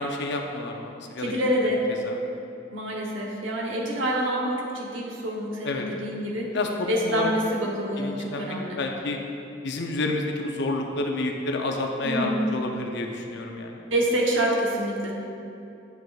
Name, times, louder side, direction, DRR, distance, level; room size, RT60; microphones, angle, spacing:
voice 1, 0.0-1.3 2.0-2.2 5.6-5.9 6.5-7.3 8.0-9.2 9.6-13.9, left 2 dB, 60° left, 2 dB, 0.6 m, -29 dB
voice 2, 1.2-1.8 2.7-6.6 6.9-8.8 12.0-12.4 13.9-15.1, right 1 dB, 70° right, -2 dB, 0.9 m, -27 dB
9.5 x 6.5 x 2.4 m, 2.7 s
head